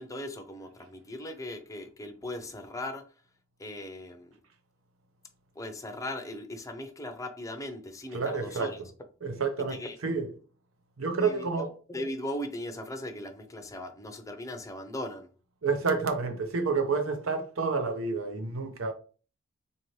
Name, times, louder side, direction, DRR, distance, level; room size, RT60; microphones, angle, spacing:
voice 1, 0.0-3.0 3.6-4.4 5.6-8.8 9.7-10.0 11.2-15.3, left 1 dB, 15° left, 0.5 m, -38 dB
voice 2, 8.1-8.7 9.2-10.3 11.0-11.7 15.6-18.9, right 4 dB, 85° right, 0.8 m, -29 dB
3.9 x 2.7 x 3.1 m
head